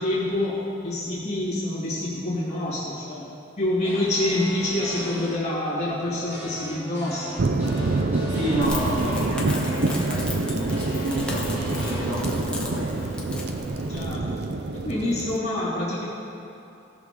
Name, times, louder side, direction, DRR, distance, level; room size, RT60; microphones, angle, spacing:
voice 1, 0.0-3.3 3.6-7.4 13.9-14.4 14.7-16.0, left 1 dB, 35° left, -9 dB, 2.3 m, -27 dB
sound 1, 3.8-5.3 6.3-10.1 10.7-12.2, equal, 10° right, 2.4 m, -38 dB
sound 2, 7.4-15.4, right 2 dB, 55° right, 0.5 m, -27 dB
voice 2, 8.3-12.9, equal, 90° right, -7 dB, 1.5 m, -30 dB
Crackle, 8.6-14.1, left 1 dB, 5° left, 1.1 m, -36 dB
17.5 x 6.2 x 3.7 m, 2.7 s
head